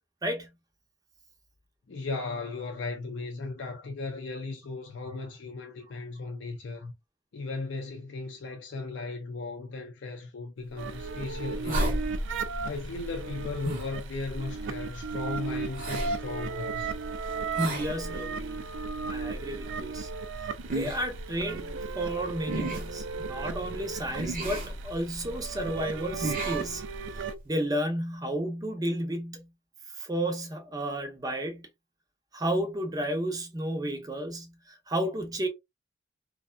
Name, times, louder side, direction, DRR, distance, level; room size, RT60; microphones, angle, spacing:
voice 1, 1.9-6.9 7.3-12.0 12.6-17.0, left 3 dB, 75° left, 0.5 m, -36 dB
sound 1, 10.8-27.4, right 1 dB, 50° right, 0.8 m, -36 dB
sound 2, 10.8-27.4, right 5 dB, 85° right, 0.4 m, -36 dB
voice 2, 17.7-18.7 19.1-20.1 20.7-26.9 27.2-29.5 30.0-31.7 32.3-35.5, right 1 dB, 20° right, 0.6 m, -32 dB
2.5 x 2.2 x 2.3 m
head